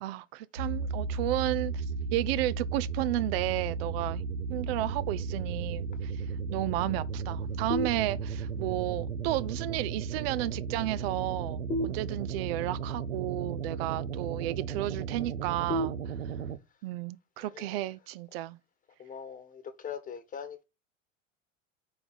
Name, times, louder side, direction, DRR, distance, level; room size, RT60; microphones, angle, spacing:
voice 1, 0.0-1.8 2.1-4.2 4.5-6.2 6.5-16.1 16.8-18.6, right 15 dB, 50° right, 0.4 m, -32 dB
sound 1, 0.6-16.6, right 5 dB, 85° right, 0.7 m, -35 dB
sound 2, 7.7-8.6 11.7-12.7 15.7-16.7, equal, 55° left, 1.3 m, -35 dB
voice 2, 17.4-17.8 19.0-20.6, left 7 dB, 20° left, 1.2 m, -42 dB
4.9 x 4.9 x 6.1 m
figure-of-eight pair, 75°, 39 cm